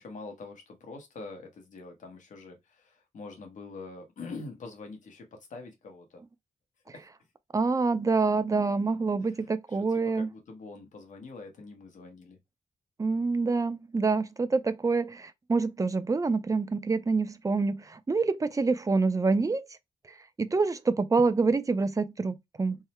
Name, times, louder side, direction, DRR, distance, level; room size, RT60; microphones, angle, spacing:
voice 1, 0.0-6.2 6.9-7.1 9.2-12.4, left 3 dB, 80° left, 1.1 m, -45 dB
voice 2, 7.5-10.3 13.0-19.6 20.4-22.8, right 4 dB, 25° right, 0.5 m, -26 dB
3.6 x 2.0 x 4.2 m
wide cardioid pair, 105°, 13 cm